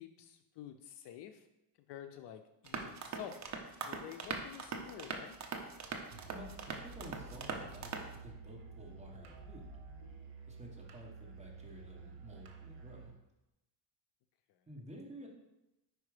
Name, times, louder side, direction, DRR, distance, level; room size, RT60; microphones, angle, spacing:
voice 1, 0.0-1.5 1.9-3.4 3.8-5.4 10.2-10.5, left 10 dB, 60° left, 8 dB, 0.5 m, -49 dB
sound 1, 2.6-8.1, right 5 dB, 35° right, 0.6 m, -42 dB
sound 2, 4.7-10.1, left 2 dB, 30° left, 0.9 m, -58 dB
Musical instrument, 6.1-13.2, right 6 dB, 65° right, 1.1 m, -52 dB
voice 2, 6.3-7.9 8.2-9.7 10.5-13.2 14.7-15.3, equal, 15° right, -2 dB, 1.1 m, -52 dB
4.9 x 4.8 x 4.8 m, 0.91 s
cardioid pair, 150°, 48 cm